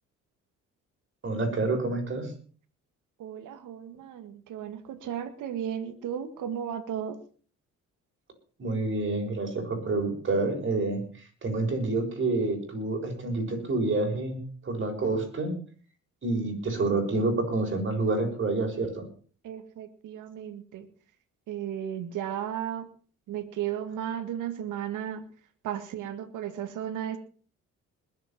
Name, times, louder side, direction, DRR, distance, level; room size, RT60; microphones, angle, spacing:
voice 1, 1.2-2.3 8.6-11.0 11.4-14.4 14.6-15.5 16.2-19.0, right 2 dB, 40° right, 3 dB, 6.8 m, -28 dB
voice 2, 3.2-7.2 19.4-20.9 21.5-22.9 23.3-25.2 25.6-27.2, right 10 dB, 85° right, 9 dB, 2.0 m, -34 dB
20.5 x 8.1 x 6.0 m, 0.42 s
cardioid pair, 90°, 30 cm